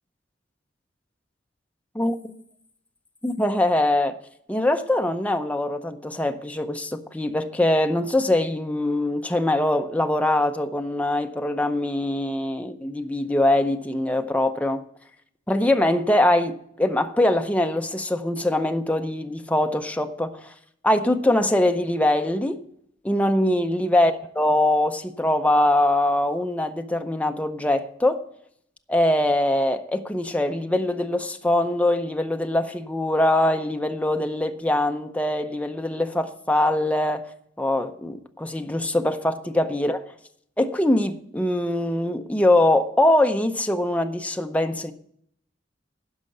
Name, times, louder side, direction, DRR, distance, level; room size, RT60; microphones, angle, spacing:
voice 1, 1.9-2.3 3.2-4.2 4.5-14.8 15.5-20.5 20.8-22.6 23.0-28.2 28.9-37.3 37.6-40.1 40.6-44.9, left 1 dB, 10° left, 0.6 m, -23 dB
12.0 x 5.2 x 8.6 m
head